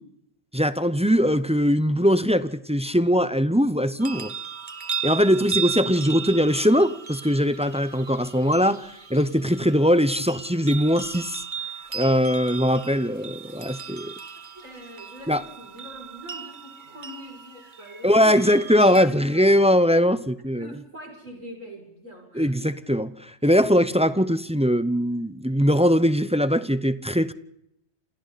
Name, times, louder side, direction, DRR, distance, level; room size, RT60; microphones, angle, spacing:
voice 1, 0.5-4.3 5.0-11.4 11.9-14.1 15.3-15.4 18.0-20.7 22.3-27.3, equal, 5° right, 12 dB, 0.7 m, -21 dB
sound 1, 4.0-19.1, right 7 dB, 40° right, 1.4 m, -36 dB
voice 2, 14.5-19.7 20.5-22.5, right 1 dB, 80° right, 1 dB, 7.1 m, -43 dB
29.0 x 28.5 x 4.2 m, 0.82 s
omnidirectional pair, 1.3 m